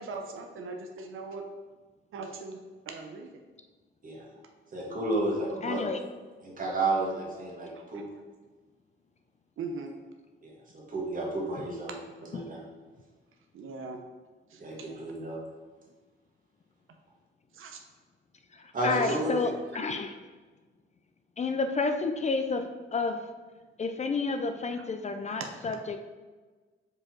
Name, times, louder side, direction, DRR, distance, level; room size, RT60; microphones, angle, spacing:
voice 1, 0.0-1.4 2.1-2.6 2.9-3.3 7.7-7.8 9.6-9.9 13.5-14.0 14.5-15.0 17.5-17.8 19.0-19.2 25.4-25.5, right 4 dB, 85° right, 3 dB, 0.7 m, -40 dB
voice 2, 4.7-5.8 6.4-8.0 10.4-11.9 12.2-12.6 14.6-15.4 18.7-19.5, right 2 dB, 40° right, -4 dB, 1.8 m, -32 dB
voice 3, 5.6-6.0 18.5-20.1 21.4-23.2 23.8-26.0, left 4 dB, 35° left, 7 dB, 0.4 m, -30 dB
5.0 x 4.7 x 4.3 m, 1.3 s
wide cardioid pair, 150°, 20 cm